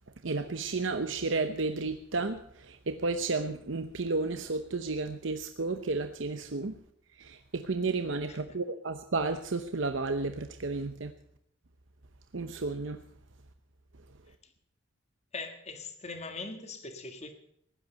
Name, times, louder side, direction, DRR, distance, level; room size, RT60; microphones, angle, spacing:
voice 1, 0.2-6.7 7.2-11.1 12.3-13.0, right 3 dB, 70° right, 8 dB, 0.8 m, -32 dB
voice 2, 15.3-17.3, left 3 dB, 35° left, 7 dB, 1.8 m, -41 dB
16.0 x 11.0 x 6.8 m, 0.70 s
head